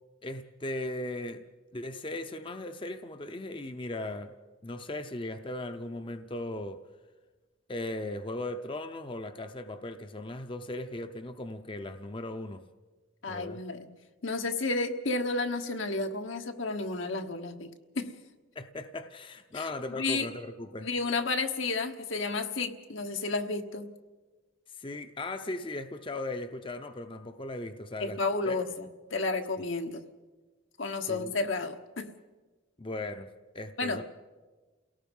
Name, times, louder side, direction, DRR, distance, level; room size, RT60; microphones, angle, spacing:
voice 1, 0.2-1.4 1.7-4.3 4.6-6.8 7.7-12.6 13.3-13.6 18.6-20.9 24.7-28.6 31.1-31.3 32.8-33.3 33.5-34.0, left 2 dB, 25° left, 0.6 m, -38 dB
voice 2, 13.2-13.9 14.2-18.1 19.5-19.6 19.9-20.3 20.8-23.9 28.0-30.0 30.8-32.1 33.8-34.0, left 3 dB, 80° left, 1.3 m, -32 dB
29.0 x 18.0 x 5.4 m
head